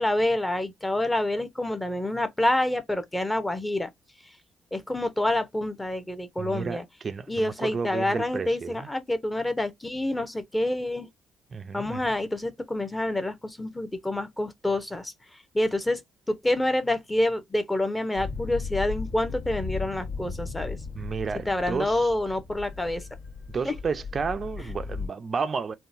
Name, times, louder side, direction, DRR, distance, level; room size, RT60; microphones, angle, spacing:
voice 1, 0.0-3.9 4.7-6.8 7.3-11.1 11.7-15.1 15.5-16.0 16.3-20.8 21.5-23.1 23.6-23.7, left 1 dB, 15° left, 0.7 m, -27 dB
voice 2, 6.4-8.9 11.5-12.0 20.9-22.1 23.5-25.7, right 5 dB, 40° right, 0.4 m, -32 dB
sound 1, 18.1-25.1, left 4 dB, 70° left, 1.3 m, -36 dB
3.7 x 2.2 x 2.5 m
cardioid pair, 90°, 0 cm